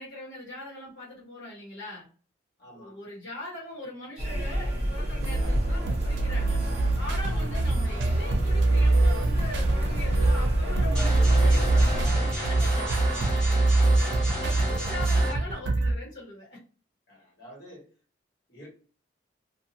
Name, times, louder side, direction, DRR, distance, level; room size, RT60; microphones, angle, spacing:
voice 1, 0.0-2.1 2.7-13.0 13.3-13.5 14.3-16.6, left 1 dB, 80° left, 1.2 m, -41 dB
voice 2, 2.6-3.0 7.3-7.6 11.1-14.5 17.1-17.9 18.5-18.7, equal, 55° left, 1.5 m, -45 dB
sound 1, 4.2-12.1, equal, 35° right, 0.9 m, -29 dB
sound 2, 5.2-15.9, right 2 dB, 85° right, 0.6 m, -24 dB
sound 3, 10.9-15.3, right 1 dB, 5° left, 1.1 m, -33 dB
2.7 x 2.4 x 2.7 m
head